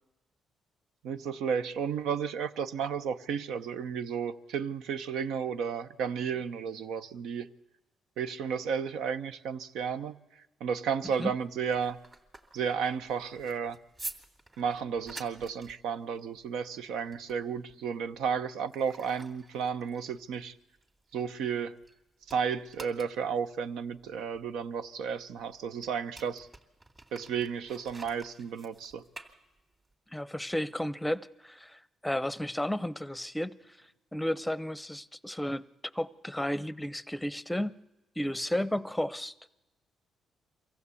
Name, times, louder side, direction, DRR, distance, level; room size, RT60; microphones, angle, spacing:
voice 1, 1.0-7.5 8.2-10.2 10.6-12.0 12.5-13.8 14.6-20.6 21.1-21.7 22.3-26.5 27.1-29.0, right 6 dB, 85° right, 0.8 m, -33 dB
sound 1, 11.5-22.0 22.2-29.9, right 2 dB, 30° right, 2.5 m, -50 dB
voice 2, 30.1-33.8 34.1-35.6 35.9-37.7 38.2-39.3, left 1 dB, 5° left, 0.7 m, -33 dB
23.5 x 15.5 x 8.4 m
cardioid pair, 90°, 0 cm